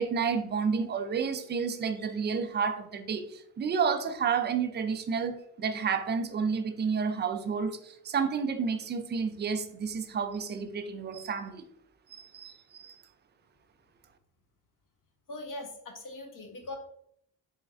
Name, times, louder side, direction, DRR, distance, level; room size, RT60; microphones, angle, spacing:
voice 1, 0.0-11.6 12.1-13.0, right 6 dB, 25° right, 0.4 m, -30 dB
voice 2, 15.3-16.8, left 2 dB, 45° left, 1.1 m, -41 dB
3.9 x 2.3 x 2.4 m
supercardioid pair, 55°, 46 cm